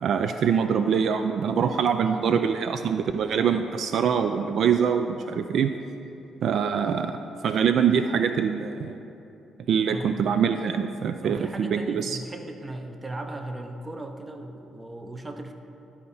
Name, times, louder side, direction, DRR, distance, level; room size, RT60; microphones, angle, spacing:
voice 1, 0.0-5.7 6.4-7.2 7.4-9.0 9.7-12.2, right 7 dB, 65° right, 8 dB, 0.3 m, -24 dB
voice 2, 11.2-15.5, right 2 dB, 20° right, 6 dB, 0.7 m, -37 dB
12.0 x 4.3 x 5.5 m, 2.8 s
cardioid pair, 90°, 0 cm